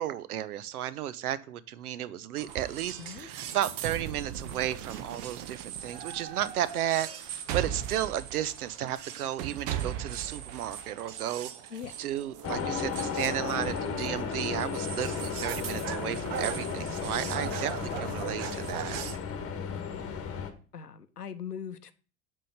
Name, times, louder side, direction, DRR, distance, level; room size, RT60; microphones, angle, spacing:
voice 1, 0.0-19.0, right 11 dB, 70° right, 17 dB, 0.7 m, -33 dB
sound 1, 2.4-19.2, right 9 dB, 50° right, 1.0 m, -39 dB
voice 2, 3.0-3.3 11.7-12.1 17.9-18.3 20.7-21.9, left 7 dB, 85° left, 12 dB, 0.7 m, -41 dB
sound 2, 12.4-20.5, left 6 dB, 30° left, 1.4 m, -34 dB
7.5 x 3.8 x 6.5 m, 0.38 s
figure-of-eight pair, 70°, 46 cm